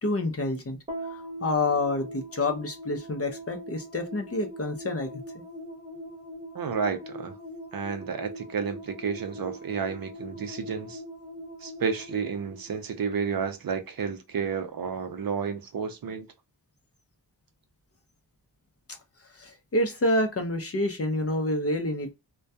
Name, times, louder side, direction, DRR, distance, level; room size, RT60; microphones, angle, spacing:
voice 1, 0.0-0.8 1.1-5.4 19.3-22.1, left 2 dB, 35° left, 0.6 m, -28 dB
sound 1, 0.9-13.4, equal, 15° right, 0.9 m, -42 dB
voice 2, 6.5-7.3 7.7-11.0 11.6-16.3, right 6 dB, 55° right, 0.5 m, -31 dB
2.2 x 2.2 x 2.6 m
wide cardioid pair, 100°, 42 cm